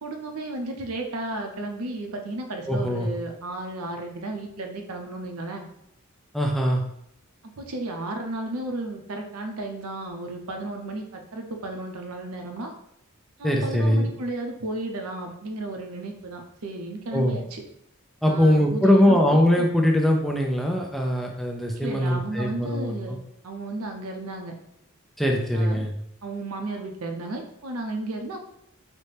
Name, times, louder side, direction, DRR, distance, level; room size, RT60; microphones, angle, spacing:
voice 1, 0.0-5.7 7.6-12.7 13.4-17.6 18.2-19.2 19.6-19.7 21.8-23.2 23.4-24.5 25.4-25.9 26.2-28.4, right 2 dB, 85° right, 3 dB, 0.6 m, -33 dB
voice 2, 2.7-3.1 6.3-6.8 13.4-14.1 17.1-17.4 18.2-23.2 25.2-25.9, equal, ahead, 0 dB, 0.3 m, -21 dB
4.1 x 2.1 x 3.2 m, 0.74 s
head